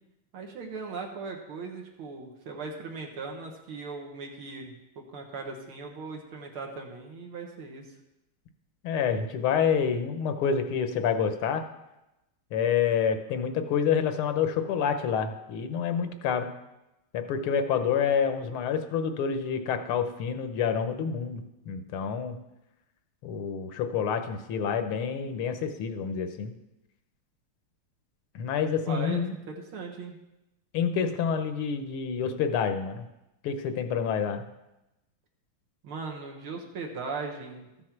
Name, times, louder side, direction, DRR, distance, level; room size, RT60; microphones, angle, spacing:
voice 1, 0.3-7.9 28.9-30.2 35.8-37.7, right 4 dB, 75° right, 1 dB, 2.2 m, -38 dB
voice 2, 8.8-11.7 12.5-16.5 17.1-22.4 23.2-26.5 28.4-29.3 30.7-33.1 33.4-34.4, left 7 dB, 80° left, 8 dB, 1.8 m, -28 dB
14.0 x 6.5 x 5.9 m, 0.94 s
omnidirectional pair, 2.4 m